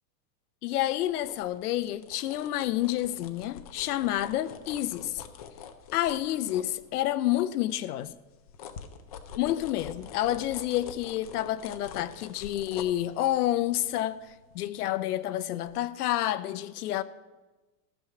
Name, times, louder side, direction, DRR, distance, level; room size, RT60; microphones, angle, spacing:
voice 1, 0.6-5.2 5.9-8.2 9.4-17.0, left 13 dB, 70° left, 0.8 m, -29 dB
sound 1, 1.0-7.3 7.7-15.3 15.6-15.8, left 7 dB, 25° left, 0.4 m, -46 dB
14.0 x 6.3 x 8.2 m
supercardioid pair, 170°, 48 cm